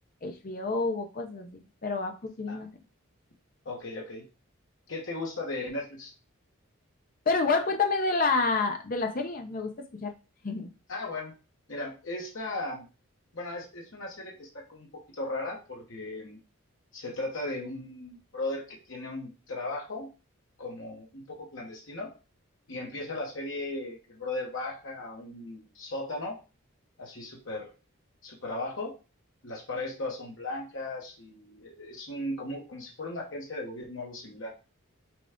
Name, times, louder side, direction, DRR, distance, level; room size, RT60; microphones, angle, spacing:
voice 1, 0.2-2.7 7.3-9.7 10.0-10.1 10.4-10.7, left 3 dB, 40° left, 6 dB, 0.5 m, -28 dB
voice 2, 3.6-4.2 4.9-6.1 10.9-11.3 11.7-12.9 13.3-14.9 15.2-16.4 16.9-20.1 20.6-22.1 22.7-26.4 27.0-27.7 28.2-28.9 29.4-34.5, left 2 dB, 65° left, -2 dB, 1.1 m, -37 dB
5.9 x 2.3 x 3.5 m, 0.31 s
head